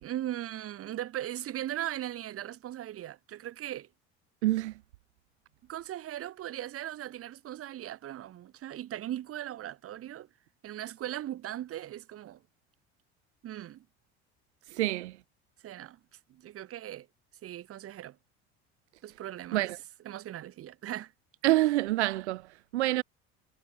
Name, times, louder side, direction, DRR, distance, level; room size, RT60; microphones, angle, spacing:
voice 1, 0.0-3.9 5.7-10.3 10.6-12.4 13.4-13.8 15.6-16.0 16.3-17.1 17.4-18.2 19.0-19.7 20.0-21.1, right 12 dB, 45° right, 1.3 m, -38 dB
voice 2, 4.4-4.7 14.7-15.2 19.5-19.8 21.4-23.0, right 17 dB, 90° right, 0.5 m, -27 dB
hypercardioid pair, 80°, 33 cm